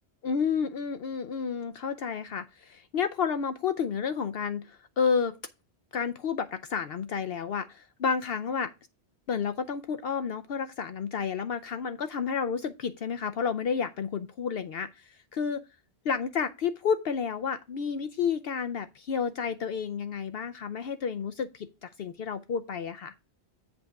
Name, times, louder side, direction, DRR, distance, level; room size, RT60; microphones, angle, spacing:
voice 1, 0.2-5.3 5.9-8.7 9.3-15.6 16.0-23.1, left 6 dB, 65° left, 0.8 m, -31 dB
7.9 x 3.4 x 6.3 m
omnidirectional pair, 1.1 m